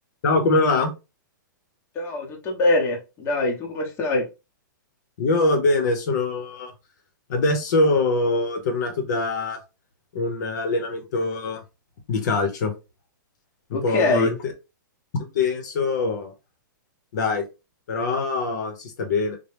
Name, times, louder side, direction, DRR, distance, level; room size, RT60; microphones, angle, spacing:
voice 1, 0.2-0.9 5.2-6.7 7.3-9.6 10.1-11.6 12.1-12.7 13.8-14.5 15.1-16.3 17.1-17.4 17.9-19.4, left 3 dB, 60° left, 0.9 m, -23 dB
voice 2, 1.9-4.2 13.7-14.3, left 2 dB, 20° left, 0.9 m, -23 dB
3.0 x 2.2 x 3.3 m
hypercardioid pair, 150°, 11 cm